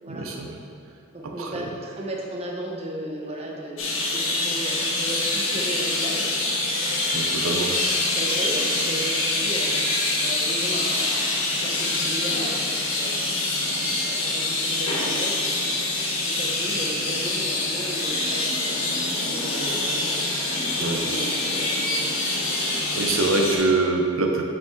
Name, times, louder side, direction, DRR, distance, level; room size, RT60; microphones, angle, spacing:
voice 1, 0.1-0.5 1.4-1.5 7.1-7.7 20.8-21.0 22.6-24.5, right 3 dB, 85° right, 2 dB, 0.7 m, -24 dB
voice 2, 1.1-6.3 7.4-9.7 10.2-13.2 14.0-22.2, right 1 dB, 30° right, -1 dB, 0.9 m, -35 dB
sound 1, 3.8-23.6, left 2 dB, 80° left, 1.4 m, -25 dB
7.1 x 6.1 x 3.6 m, 2.4 s
head